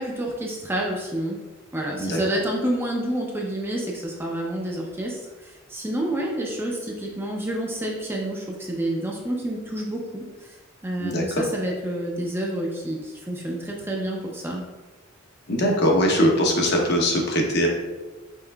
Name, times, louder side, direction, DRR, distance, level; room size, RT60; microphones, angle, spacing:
voice 1, 0.0-1.4 1.7-10.6 10.8-14.6, right 1 dB, 10° right, -1 dB, 0.5 m, -29 dB
voice 2, 11.0-11.4 15.5-17.7, equal, 55° left, 0 dB, 0.8 m, -21 dB
5.5 x 3.6 x 2.3 m, 1.2 s
head